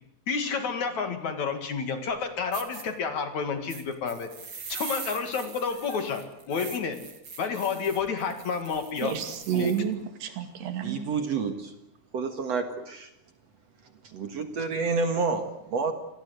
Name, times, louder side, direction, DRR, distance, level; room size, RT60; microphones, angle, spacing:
voice 1, 0.3-4.3 4.7-7.0 7.4-9.2 9.5-9.7, left 5 dB, 50° left, 2.9 m, -30 dB
sound 1, 2.1-2.2 2.5-2.8 3.7-9.8, right 5 dB, 30° right, 2.7 m, -42 dB
voice 2, 9.0-11.1, right 8 dB, 85° right, 4.6 m, -30 dB
voice 3, 10.8-11.7 12.1-13.1 14.0-15.9, right 4 dB, 55° right, 2.1 m, -29 dB
28.0 x 19.5 x 8.1 m
omnidirectional pair, 4.7 m